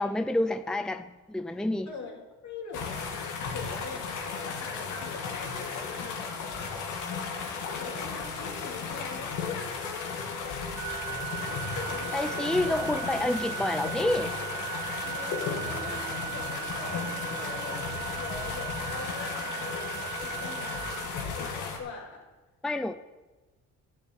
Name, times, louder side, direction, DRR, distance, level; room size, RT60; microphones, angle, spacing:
voice 1, 0.0-1.9 12.1-14.3 22.6-22.9, left 1 dB, ahead, 10 dB, 0.5 m, -28 dB
voice 2, 1.9-3.3 3.5-6.7 7.1-12.9 15.0-22.3, left 4 dB, 65° left, 0 dB, 3.2 m, -43 dB
sound 1, 2.7-21.8, left 5 dB, 85° left, 2.4 m, -35 dB
Organ, 10.8-21.8, right 19 dB, 75° right, 0.8 m, -38 dB
11.5 x 8.1 x 8.8 m, 1.2 s
cardioid pair, 90°, 30 cm